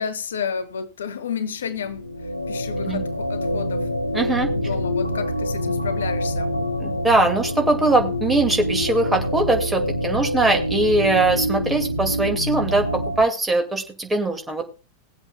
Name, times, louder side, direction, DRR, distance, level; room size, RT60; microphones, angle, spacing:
voice 1, 0.0-2.0 2.5-3.9 4.5-6.5, left 7 dB, 65° left, 1.0 m, -30 dB
sound 1, 1.7-13.2, equal, 90° left, 1.0 m, -26 dB
voice 2, 4.1-4.5 6.8-14.6, right 2 dB, 10° right, 2.3 m, -21 dB
21.0 x 8.0 x 2.4 m
figure-of-eight pair, 90°, 0 cm